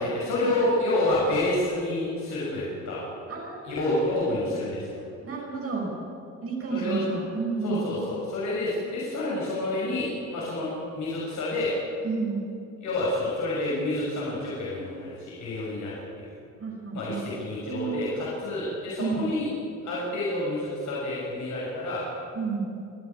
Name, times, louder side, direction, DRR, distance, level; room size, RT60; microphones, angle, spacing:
voice 1, 0.0-3.0 3.6-5.0 6.7-7.1 7.6-11.7 12.8-16.3 16.9-19.5 19.8-22.1, left 2 dB, 70° left, -6 dB, 6.9 m, -29 dB
voice 2, 3.3-3.9 4.2-4.3 5.2-5.9 6.4-7.8 12.0-12.4 16.6-17.2 17.6-18.1 19.0-19.2 22.3-22.7, right 4 dB, 50° right, -1 dB, 5.8 m, -31 dB
28.0 x 9.8 x 9.7 m, 2.5 s
cardioid pair, 90°, 30 cm